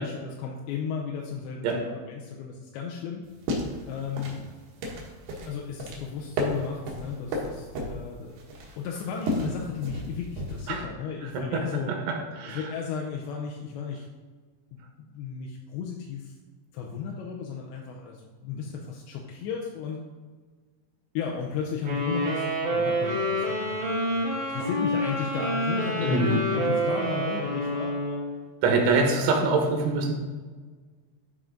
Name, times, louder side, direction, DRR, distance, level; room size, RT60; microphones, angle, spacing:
voice 1, 0.0-3.3 3.9-4.4 5.5-8.4 8.8-11.9 12.5-14.1 14.7-16.3 16.7-20.0 21.1-28.2 28.7-28.9, left 6 dB, 80° left, -1 dB, 2.9 m, -34 dB
sound 1, 3.2-10.8, equal, 65° right, 3.4 m, -34 dB
voice 2, 11.2-12.7 26.0-26.7 28.6-30.1, right 3 dB, 85° right, 2 dB, 3.8 m, -25 dB
sound 2, 21.8-28.4, equal, 30° right, 2.2 m, -28 dB
12.5 x 6.0 x 3.8 m, 1.5 s
omnidirectional pair, 5.4 m